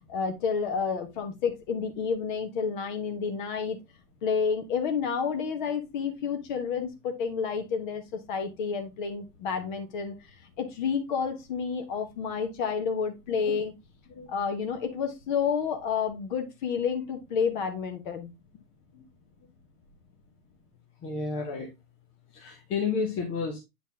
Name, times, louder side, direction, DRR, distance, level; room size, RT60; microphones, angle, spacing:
voice 1, 0.1-3.8 4.2-10.2 10.6-13.7 14.3-18.3, left 6 dB, 30° left, 1.3 m, -30 dB
voice 2, 21.0-21.7 22.3-23.6, left 5 dB, 15° left, 0.8 m, -31 dB
8.7 x 4.0 x 3.4 m
hypercardioid pair, 135°, 47 cm